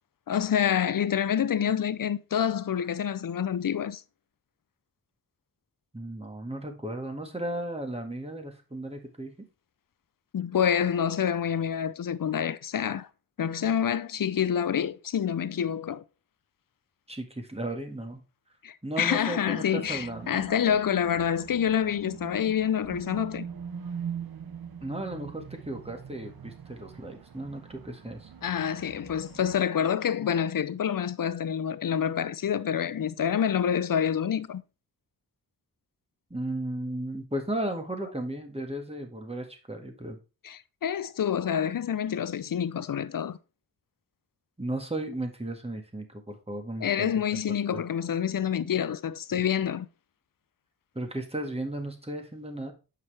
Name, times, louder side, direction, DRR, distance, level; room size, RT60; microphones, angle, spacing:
voice 1, 0.3-4.0 10.3-13.1 13.4-16.0 18.6-23.4 28.4-34.6 40.4-43.4 46.8-49.9, left 8 dB, 60° left, 0.6 m, -27 dB
voice 2, 5.9-9.4 17.1-18.2 18.8-20.3 24.8-28.3 36.3-40.2 44.6-47.4 47.7-47.8 49.3-49.4 51.0-52.7, right 1 dB, 15° right, 1.8 m, -35 dB
sound 1, 19.8-29.6, right 7 dB, 70° right, 0.9 m, -42 dB
7.6 x 5.4 x 3.3 m
cardioid pair, 50°, 38 cm